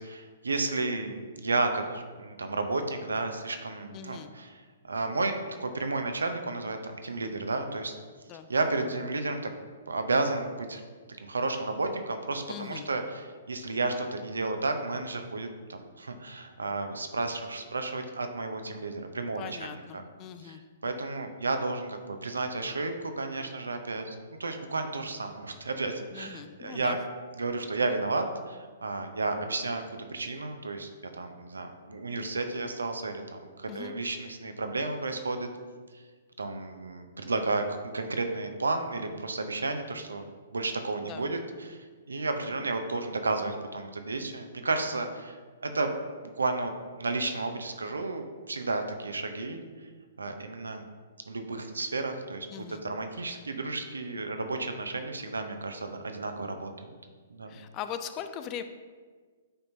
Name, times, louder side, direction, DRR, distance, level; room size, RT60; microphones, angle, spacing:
voice 1, 0.0-7.9 8.5-9.5 9.9-10.8 11.1-20.0 20.4-27.0 27.4-35.5 36.4-37.7 37.9-40.3 40.5-45.4 45.6-45.9 46.4-49.6 50.2-50.8 51.3-56.7 57.3-57.5, right 3 dB, 80° right, 6 dB, 0.7 m, -32 dB
voice 2, 3.9-4.3 8.3-8.5 12.5-12.9 19.4-20.6 26.1-27.0 33.7-33.9 41.0-41.2 52.5-52.8 57.5-58.6, left 9 dB, 30° left, 9 dB, 0.4 m, -40 dB
8.8 x 4.4 x 2.7 m, 1.5 s
figure-of-eight pair, 120°, 0 cm